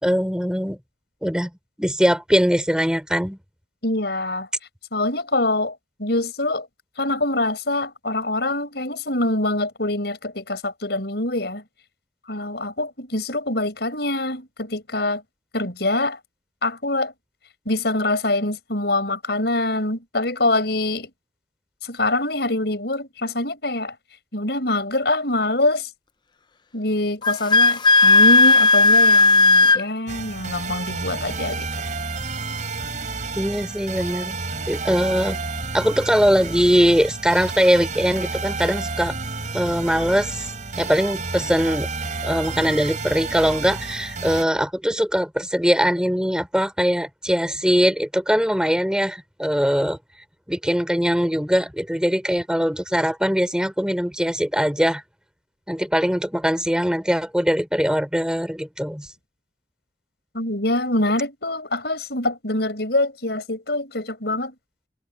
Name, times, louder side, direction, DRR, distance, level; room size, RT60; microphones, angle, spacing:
voice 1, 0.0-0.8 1.2-1.5 1.8-3.4 33.3-34.4 34.7-35.4 35.7-39.2 39.5-40.5 40.8-41.9 42.2-50.0 50.5-55.0 55.7-59.1, equal, 5° right, 4.6 m, -21 dB
voice 2, 3.8-4.5 4.9-6.7 7.0-11.6 12.3-15.2 15.5-16.2 16.6-17.1 17.7-21.1 21.8-23.9 24.3-25.9 26.7-31.7 60.3-64.5, left 2 dB, 65° left, 7.8 m, -24 dB
Wind instrument woodwind instrument, 27.2-29.8, left 3 dB, 25° left, 0.5 m, -14 dB
sound 1, 30.1-44.4, right 3 dB, 45° right, 4.1 m, -30 dB
head